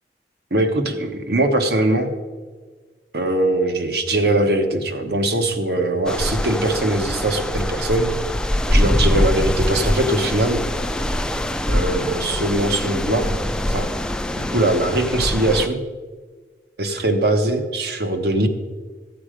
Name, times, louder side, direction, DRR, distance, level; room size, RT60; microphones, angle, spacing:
voice 1, 0.5-2.1 3.1-8.3 8.7-10.6 11.7-13.3 13.7-13.9 14.3-15.8 16.8-18.5, right 1 dB, 65° right, 6 dB, 1.2 m, -21 dB
sound 1, 6.1-15.7, left 1 dB, 5° left, 0.3 m, -23 dB
14.5 x 8.3 x 5.0 m, 1.5 s
head